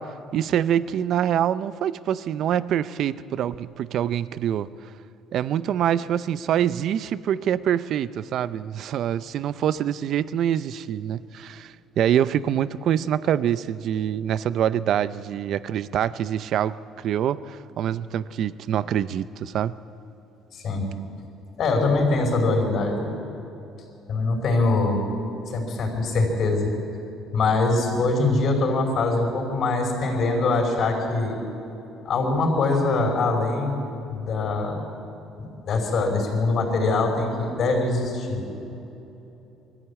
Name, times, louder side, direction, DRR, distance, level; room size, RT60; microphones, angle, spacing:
voice 1, 0.0-4.7 5.3-19.8, right 10 dB, 50° right, 16 dB, 0.5 m, -25 dB
voice 2, 20.5-20.9 21.6-23.0 24.1-25.0 25.5-26.7 27.3-31.4 32.0-34.8 35.4-38.4, left 3 dB, 45° left, 1 dB, 5.1 m, -23 dB
22.5 x 14.5 x 8.6 m, 3.0 s
cardioid pair, 155°, 0 cm